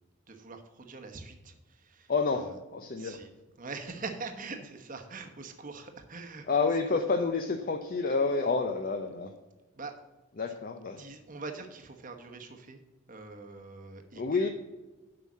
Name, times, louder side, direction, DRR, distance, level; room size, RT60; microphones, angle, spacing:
voice 1, 0.3-2.6 3.0-3.3 3.6-6.5 6.9-7.0 9.7-10.0 11.0-12.8 13.1-14.5, right 4 dB, 35° right, 5 dB, 1.0 m, -43 dB
voice 2, 2.1-3.2 6.5-9.3 10.4-11.0 14.2-14.5, left 4 dB, 40° left, 5 dB, 0.6 m, -29 dB
7.8 x 5.6 x 7.3 m, 1.1 s
head